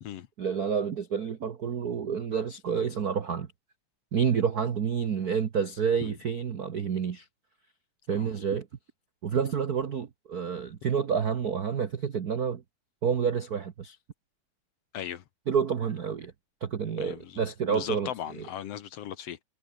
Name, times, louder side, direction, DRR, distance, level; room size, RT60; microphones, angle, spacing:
voice 1, 0.4-3.5 4.1-7.2 8.1-8.7 9.2-12.6 13.0-14.0 15.5-16.3 16.6-18.1, right 7 dB, 65° right, 0.9 m, -29 dB
voice 2, 14.9-15.2 17.0-19.4, left 10 dB, 65° left, 1.9 m, -38 dB
omnidirectional pair, 3.5 m